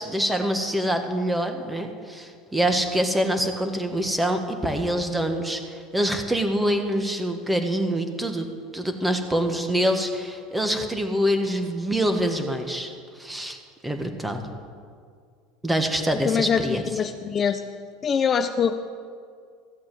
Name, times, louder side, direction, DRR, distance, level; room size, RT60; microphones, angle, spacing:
voice 1, 0.0-8.5 8.7-14.4 15.6-17.0, equal, 5° right, 5 dB, 1.4 m, -25 dB
voice 2, 16.3-17.6 18.0-18.7, left 7 dB, 30° left, 8 dB, 0.5 m, -23 dB
14.5 x 8.4 x 7.7 m, 2.1 s
supercardioid pair, 125°, 0 cm